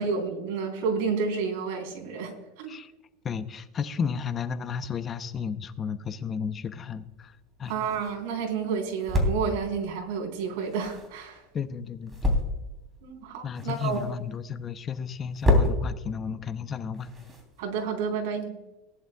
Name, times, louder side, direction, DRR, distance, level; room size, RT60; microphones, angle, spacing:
voice 1, 0.0-2.7 7.7-11.4 13.0-14.0 17.6-18.6, right 5 dB, 70° right, 2 dB, 3.7 m, -30 dB
voice 2, 3.2-7.8 11.5-12.3 13.4-17.1, left 6 dB, 25° left, 11 dB, 0.7 m, -33 dB
sound 1, 6.9-18.1, left 2 dB, 15° right, 3.1 m, -31 dB
19.0 x 11.0 x 2.3 m, 0.99 s
supercardioid pair, 140°, 0 cm